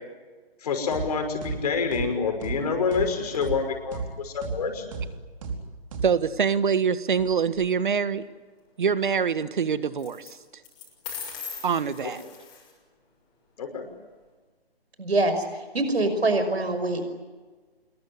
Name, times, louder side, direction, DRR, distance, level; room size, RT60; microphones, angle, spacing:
voice 1, 0.6-4.8 12.0-12.1 13.6-13.9, left 5 dB, 40° left, 5 dB, 5.8 m, -27 dB
sound 1, 0.9-1.1 1.4-1.6 1.9-2.1 2.4-2.6 2.9-3.1 3.4-3.6 3.9-4.1 4.4-4.6 4.9-5.1 5.4-5.6 5.9-6.1, right 4 dB, 30° right, 4.4 m, -32 dB
voice 2, 6.0-8.2 8.8-10.3 11.6-12.2, right 6 dB, 50° right, 14 dB, 1.7 m, -24 dB
sound 2, 7.1-7.6 10.0-10.3 10.6-12.7, left 6 dB, 15° left, 6.4 m, -39 dB
voice 3, 15.0-15.4 15.7-17.0, right 2 dB, 75° right, 8 dB, 5.5 m, -24 dB
27.0 x 22.0 x 9.8 m, 1.3 s
figure-of-eight pair, 160°, 31 cm